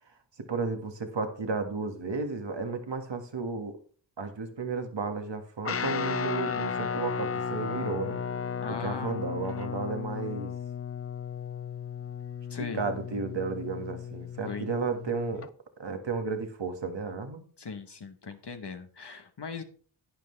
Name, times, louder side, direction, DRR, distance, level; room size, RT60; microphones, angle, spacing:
voice 1, 0.5-3.8 4.2-8.2 8.7-10.5 12.6-15.5 15.8-17.4, right 4 dB, 60° right, 6 dB, 1.8 m, -33 dB
Guitar, 5.6-15.5, left 6 dB, 30° left, 0.4 m, -35 dB
voice 2, 8.6-9.2 12.5-12.8 14.5-14.7 17.6-19.6, left 4 dB, 55° left, 7 dB, 1.1 m, -39 dB
11.5 x 9.3 x 3.3 m, 0.43 s
cardioid pair, 45°, 49 cm